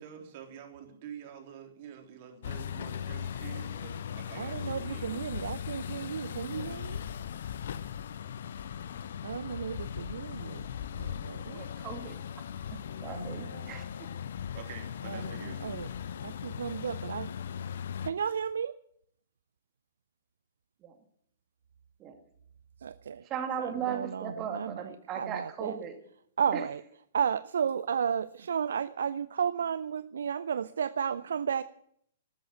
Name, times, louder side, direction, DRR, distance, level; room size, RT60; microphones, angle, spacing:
voice 1, 0.0-5.2 14.5-15.8, right 8 dB, 40° right, 4 dB, 3.6 m, -47 dB
sound 1, 2.4-18.1, left 8 dB, 55° left, 0.9 m, -38 dB
voice 2, 4.4-7.0 9.2-10.6 11.0-11.6 13.1-13.8 15.1-15.2 15.6-15.9 16.2-17.3 18.0-18.7 22.8-23.2 23.6-24.7 25.2-25.8 26.4-26.8 27.1-31.6, right 7 dB, 60° right, 15 dB, 0.5 m, -33 dB
voice 3, 11.5-12.1 12.7-13.8 22.0-22.1 23.3-26.0 26.5-26.7, right 8 dB, 25° right, 6 dB, 2.2 m, -37 dB
13.0 x 13.0 x 7.8 m, 0.67 s
figure-of-eight pair, 110°, 0 cm